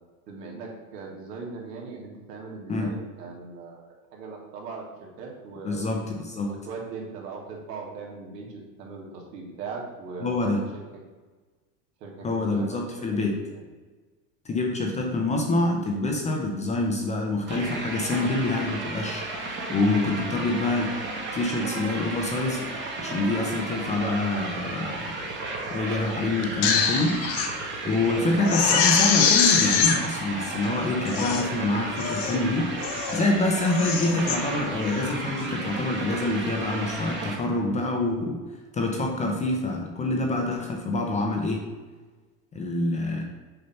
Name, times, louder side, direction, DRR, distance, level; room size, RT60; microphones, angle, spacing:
voice 1, 0.3-4.8 5.2-5.9 6.4-11.0 12.0-13.2 13.5-13.6, right 4 dB, 80° right, 0 dB, 1.8 m, -39 dB
voice 2, 5.6-6.5 10.2-10.6 12.2-13.3 14.5-20.9 21.3-22.6 23.0-25.2 25.7-27.1 27.8-38.4 38.7-41.6 42.5-43.2, left 2 dB, 15° left, 1 dB, 0.5 m, -26 dB
sound 1, 17.5-37.4, right 2 dB, 25° right, 1.1 m, -33 dB
Crying sobbing, 26.4-27.5 27.9-28.0 28.4-30.0 30.6-30.7 31.1-31.5 32.0-32.4 32.8-33.2 33.6-34.4 34.8-35.1, left 6 dB, 55° left, 1.0 m, -23 dB
6.6 x 2.8 x 5.5 m, 1.3 s
supercardioid pair, 135°, 48 cm